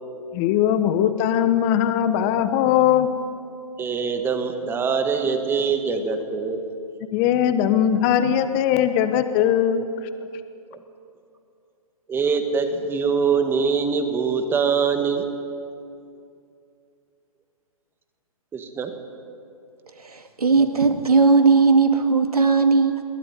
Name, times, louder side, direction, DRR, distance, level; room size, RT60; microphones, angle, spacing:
voice 1, 0.3-3.1 7.1-9.9, left 10 dB, 25° left, 10 dB, 1.2 m, -20 dB
voice 2, 3.8-6.6 10.7-10.8 12.1-15.3 18.5-18.9, right 5 dB, 10° right, 7 dB, 1.7 m, -23 dB
voice 3, 19.9-23.0, right 4 dB, 85° right, 6 dB, 2.2 m, -18 dB
22.0 x 18.0 x 9.6 m, 2.5 s
hypercardioid pair, 135°, 19 cm